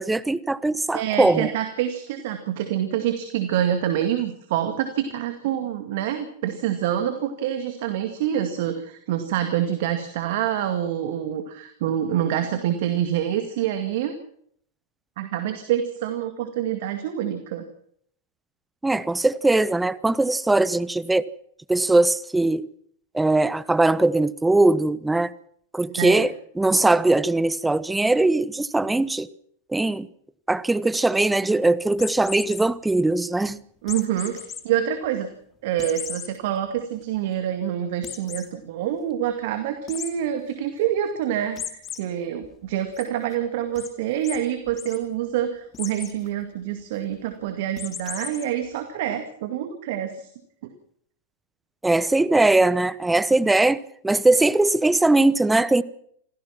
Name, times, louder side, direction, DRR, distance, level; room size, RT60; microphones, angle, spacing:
voice 1, 0.0-1.5 18.8-21.2 21.7-22.7 23.1-25.3 25.7-29.3 29.7-30.1 30.5-33.6 51.8-53.8 54.0-55.8, right 2 dB, 10° right, 0.9 m, -20 dB
voice 2, 0.9-14.1 15.2-17.6 26.0-26.3 33.8-35.3 35.6-50.3, right 10 dB, 60° right, 2.1 m, -26 dB
sound 1, 31.9-32.6 33.9-34.6 35.0-35.1 35.8-36.3 36.8-36.9 37.2-37.3 38.0-38.5 39.9-40.1 41.6-42.0 42.4-43.0 43.8-43.9 44.2-44.4 44.7-45.0 45.7-46.1 47.8-48.4, left 8 dB, 30° left, 2.6 m, -35 dB
26.5 x 16.5 x 6.0 m
figure-of-eight pair, 95°, 0 cm